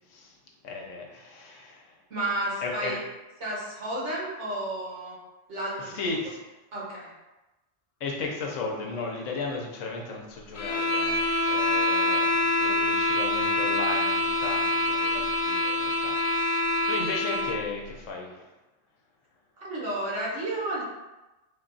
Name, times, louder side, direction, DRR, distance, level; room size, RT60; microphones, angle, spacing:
voice 1, 0.6-2.0 2.6-3.0 5.8-6.5 8.0-18.5, left 3 dB, 80° left, 0 dB, 1.1 m, -35 dB
voice 2, 2.1-3.0 3.4-5.2 5.5-6.1 6.7-7.1 11.9-12.3 19.6-20.8, right 1 dB, 70° right, -5 dB, 1.4 m, -32 dB
sound 1, 10.5-17.6, left 1 dB, 55° left, 0.5 m, -25 dB
3.6 x 2.3 x 3.8 m, 1.1 s
omnidirectional pair, 1.3 m